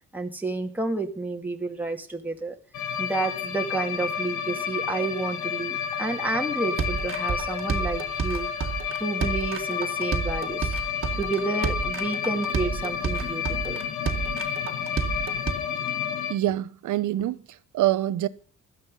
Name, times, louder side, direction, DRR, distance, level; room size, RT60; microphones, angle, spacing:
voice 1, 0.1-2.6 3.0-8.7 9.0-10.8 11.2-13.8, right 3 dB, 5° right, 2.3 m, -30 dB
sound 1, 2.7-16.3, left 8 dB, 75° left, 1.6 m, -30 dB
sound 2, 6.8-15.5, right 6 dB, 45° right, 2.0 m, -30 dB
voice 2, 16.3-18.3, right 14 dB, 75° right, 1.0 m, -26 dB
16.5 x 12.0 x 5.4 m
cardioid pair, 90°, 30 cm